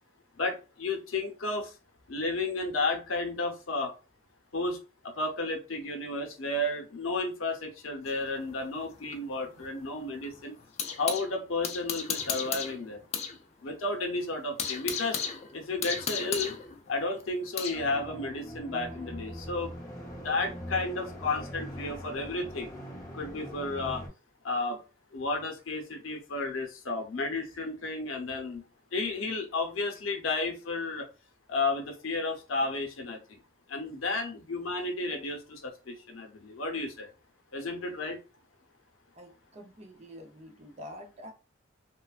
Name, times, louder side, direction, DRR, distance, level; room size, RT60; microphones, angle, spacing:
voice 1, 0.4-1.7 2.1-3.9 4.5-4.8 5.0-10.5 11.0-13.0 13.6-15.2 15.5-16.5 16.9-19.7 20.2-22.7 23.1-24.0 24.4-24.8 25.1-28.6 28.9-31.1 31.5-33.4 33.7-37.1 37.5-38.2, left 2 dB, 85° left, 0.7 m, -32 dB
sound 1, 8.1-11.3 11.6-13.4 13.7-13.8 14.2-17.8, left 7 dB, 35° left, 0.3 m, -35 dB
sound 2, 17.7-24.1, equal, 15° left, 0.7 m, -42 dB
voice 2, 39.2-41.3, equal, 35° right, 0.6 m, -47 dB
3.2 x 2.1 x 2.3 m
head